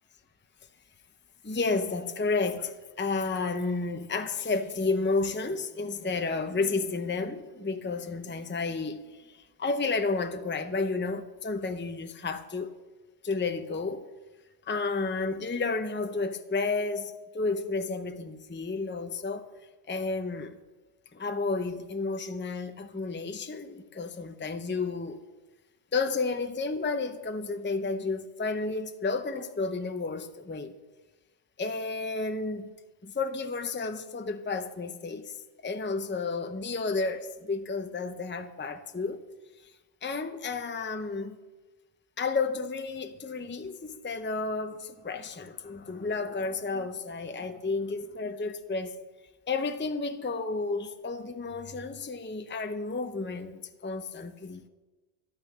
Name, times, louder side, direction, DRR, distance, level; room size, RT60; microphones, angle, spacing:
voice 1, 1.4-12.8 13.2-14.1 14.7-19.5 19.9-20.6 21.1-25.2 25.9-30.7 31.6-32.7 33.0-35.4 35.6-39.2 40.0-41.4 42.2-49.0 49.5-54.6, left 3 dB, 15° left, 0.6 m, -31 dB
12.5 x 12.0 x 6.7 m
omnidirectional pair, 1.1 m